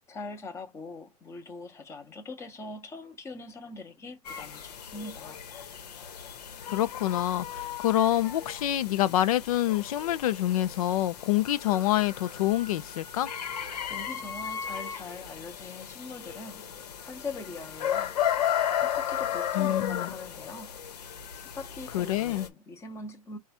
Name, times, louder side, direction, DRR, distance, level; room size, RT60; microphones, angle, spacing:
voice 1, 0.1-5.4 13.8-18.2 18.8-20.8 21.0-23.4, left 3 dB, 15° left, 0.9 m, -42 dB
sound 1, 4.2-22.5, left 9 dB, 80° left, 1.1 m, -35 dB
voice 2, 6.7-13.3 19.5-20.1 21.9-22.5, left 13 dB, 65° left, 0.6 m, -26 dB
4.7 x 2.4 x 4.2 m
supercardioid pair, 155°, 20 cm